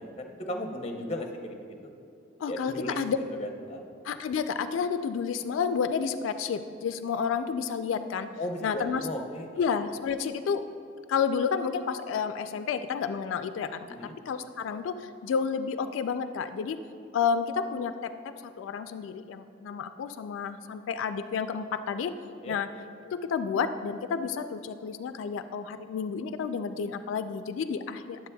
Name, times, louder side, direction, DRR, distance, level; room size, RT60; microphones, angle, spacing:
voice 1, 0.0-1.6 1.8-1.9 2.5-3.0 3.3-3.8 8.4-9.6 13.9-14.2 22.4-22.6, left 1 dB, 35° left, 3 dB, 0.6 m, -36 dB
voice 2, 2.4-3.2 4.0-8.3 8.6-9.1 9.6-10.6 11.1-13.9 14.3-16.8 17.1-22.2 22.5-22.7 23.0-28.2, left 6 dB, 80° left, 10 dB, 0.3 m, -30 dB
11.0 x 7.5 x 2.2 m, 2.6 s
head